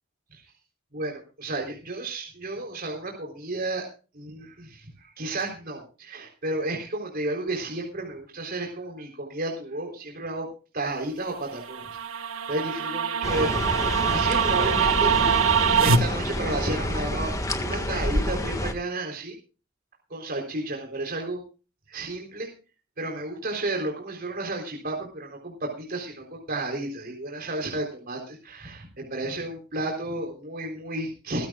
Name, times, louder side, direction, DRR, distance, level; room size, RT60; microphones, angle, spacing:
voice 1, 0.9-3.9 4.1-10.5 10.7-11.8 12.5-15.1 15.8-19.3 20.1-21.4 21.9-22.5 23.0-31.5, right 2 dB, 50° right, 0 dB, 3.9 m, -32 dB
sound 1, 11.5-16.0, right 6 dB, 85° right, 1.4 m, -23 dB
sound 2, 13.2-18.7, left 1 dB, 15° left, 1.8 m, -28 dB
19.5 x 16.0 x 2.4 m, 0.35 s
head